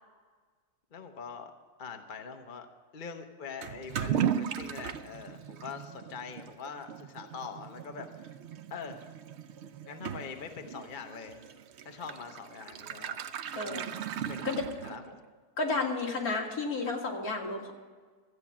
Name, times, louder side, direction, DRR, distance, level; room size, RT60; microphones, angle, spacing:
voice 1, 0.9-1.5 1.8-2.7 2.9-8.3 8.7-9.1 9.9-11.4 11.8-13.2 13.6-13.9 14.3-14.5 14.8-15.2, left 5 dB, 40° left, 5 dB, 0.8 m, -43 dB
Toilet flush / Liquid, 3.6-15.2, right 9 dB, 70° right, 0.6 m, -37 dB
voice 2, 13.5-13.9 14.4-14.6 15.6-17.7, left 3 dB, 60° left, 0 dB, 2.3 m, -32 dB
14.0 x 8.4 x 7.3 m, 1.5 s
omnidirectional pair, 1.7 m